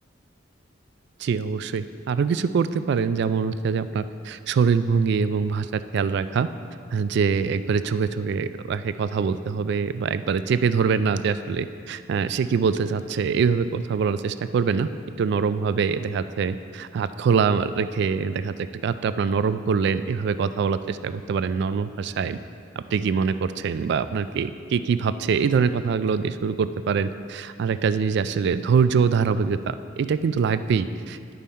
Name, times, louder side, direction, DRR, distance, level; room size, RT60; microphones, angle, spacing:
voice 1, 1.2-6.5 6.9-14.9 15.2-18.5 18.8-22.4 22.9-31.3, right 6 dB, 60° right, 13 dB, 0.3 m, -24 dB
10.5 x 5.4 x 4.2 m, 2.3 s
head